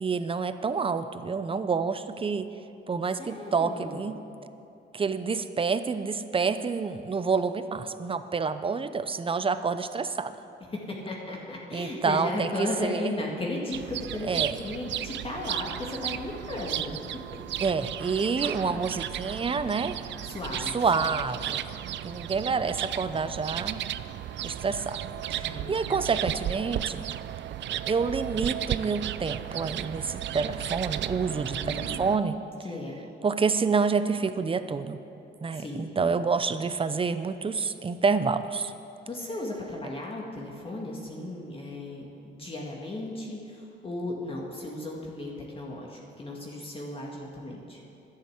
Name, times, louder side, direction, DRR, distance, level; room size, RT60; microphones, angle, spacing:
voice 1, 0.0-2.5 2.9-4.2 4.9-10.3 11.7-13.1 14.2-14.6 17.6-20.1 20.7-21.6 22.0-23.8 24.4-25.0 25.3-27.0 27.7-32.4 33.2-35.0 35.4-38.7, right 5 dB, 25° right, 11 dB, 0.7 m, -28 dB
voice 2, 3.2-4.1 10.7-16.9 18.5-18.9 20.2-21.6 25.3-26.2 31.3-32.0 32.6-33.1 35.5-35.9 39.1-47.8, left 2 dB, 25° left, -2 dB, 2.1 m, -36 dB
sound 1, 13.7-32.2, right 12 dB, 65° right, 0.5 m, -34 dB
11.5 x 10.5 x 8.0 m, 2.7 s
cardioid pair, 90°, 20 cm